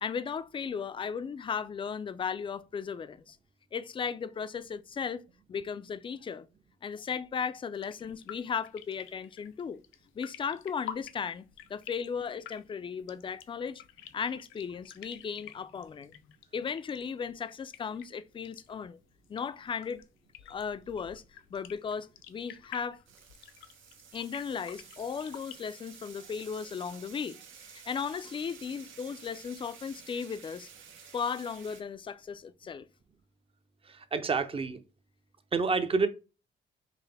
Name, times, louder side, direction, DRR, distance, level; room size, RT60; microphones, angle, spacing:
voice 1, 0.0-3.4 3.7-5.2 5.5-6.5 6.8-9.8 10.2-13.8 14.1-16.2 16.5-19.0 19.3-20.0 20.5-21.2 21.5-23.0 24.1-27.4 27.7-30.7 31.1-32.9, left 6 dB, 25° left, 0.3 m, -36 dB
sound 1, 7.7-25.5, left 10 dB, 85° left, 0.5 m, -50 dB
sound 2, 23.1-31.8, right 7 dB, 75° right, 0.8 m, -52 dB
voice 2, 33.9-34.8 35.5-36.1, right 4 dB, 30° right, 0.6 m, -28 dB
5.6 x 2.0 x 3.3 m
cardioid pair, 90°, 20 cm